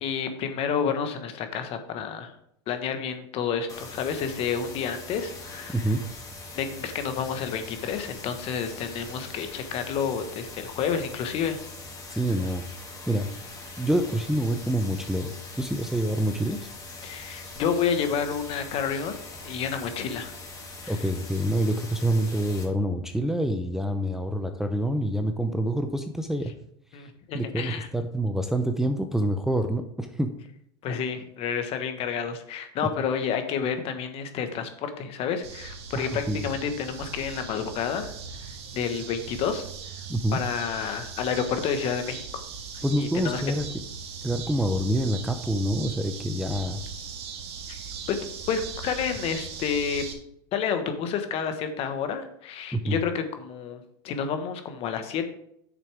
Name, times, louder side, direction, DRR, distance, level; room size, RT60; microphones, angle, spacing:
voice 1, 0.0-2.3 2.7-5.8 6.5-11.6 12.1-12.2 17.0-19.2 19.4-20.3 20.8-21.0 26.9-27.9 30.8-38.1 38.7-39.6 40.3-42.4 43.0-43.4 47.7-47.8 48.1-48.2 48.5-50.0 50.5-55.3, left 7 dB, 45° left, 7 dB, 1.4 m, -30 dB
sound 1, 3.7-22.6, left 2 dB, 25° left, 2.6 m, -42 dB
voice 2, 12.1-12.6 13.1-13.3 13.8-16.7 20.9-26.5 26.9-27.1 27.3-30.3 36.0-36.5 40.1-40.4 42.8-43.7 44.2-46.8 52.7-53.0, right 1 dB, 5° right, 5 dB, 0.6 m, -27 dB
sound 2, 35.4-50.1, right 6 dB, 70° right, 1.8 m, -39 dB
8.9 x 6.8 x 3.5 m, 0.73 s
supercardioid pair, 115°, 14 cm